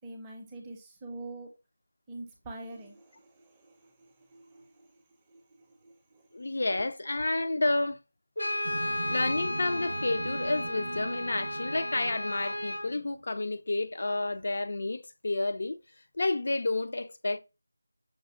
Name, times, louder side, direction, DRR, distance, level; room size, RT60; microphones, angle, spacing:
voice 1, 0.0-1.5 2.1-4.9 5.3-6.2, right 2 dB, 10° right, 0.5 m, -46 dB
voice 2, 6.3-8.0 9.1-15.8 16.1-17.4, left 2 dB, 50° left, 0.4 m, -30 dB
Brass instrument, 8.4-12.9, left 1 dB, 90° left, 1.2 m, -34 dB
sound 1, 8.6-13.2, right 2 dB, 60° right, 0.5 m, -41 dB
5.8 x 2.1 x 2.4 m
figure-of-eight pair, 175°, 0 cm